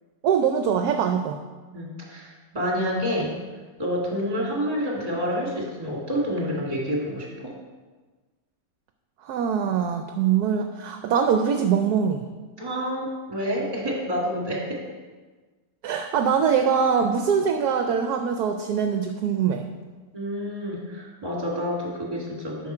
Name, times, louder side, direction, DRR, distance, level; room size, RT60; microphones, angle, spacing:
voice 1, 0.2-1.4 9.2-12.2 15.8-19.6, right 7 dB, 70° right, 6 dB, 1.0 m, -23 dB
voice 2, 1.7-3.4 3.8-7.5 12.6-14.8 20.1-22.7, equal, 20° right, -3 dB, 2.1 m, -28 dB
9.5 x 6.1 x 4.4 m, 1.3 s
omnidirectional pair, 1.8 m